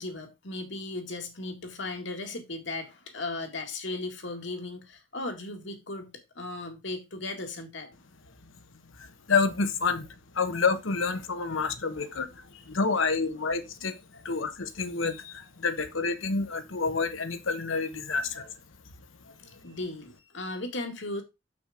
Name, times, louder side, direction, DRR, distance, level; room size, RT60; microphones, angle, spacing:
voice 1, 0.0-7.9 12.5-12.6 19.5-21.2, left 2 dB, 65° left, 1.9 m, -36 dB
voice 2, 8.9-10.1 10.3-18.5 19.2-19.4, left 4 dB, 90° left, 1.1 m, -29 dB
6.6 x 6.1 x 5.0 m
head